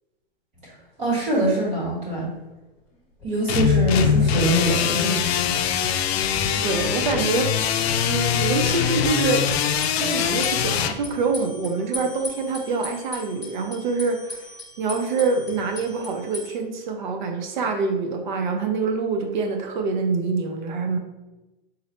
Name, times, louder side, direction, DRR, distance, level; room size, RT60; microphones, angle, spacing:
sound 1, 0.6-0.7 1.0-1.1 1.4-1.5 2.1-2.5 2.8-4.8 5.0-5.1 9.2-16.5, left 2 dB, ahead, 0.3 m, -40 dB
voice 1, 1.0-2.3 3.2-5.4, right 1 dB, 20° right, -5 dB, 1.2 m, -24 dB
sound 2, 3.5-10.9, left 8 dB, 85° left, 0.5 m, -22 dB
voice 2, 6.6-7.5 8.1-9.5 9.9-14.5 14.8-21.0, right 4 dB, 50° right, 4 dB, 0.6 m, -25 dB
3.9 x 2.1 x 4.1 m, 1.0 s
supercardioid pair, 170°, 31 cm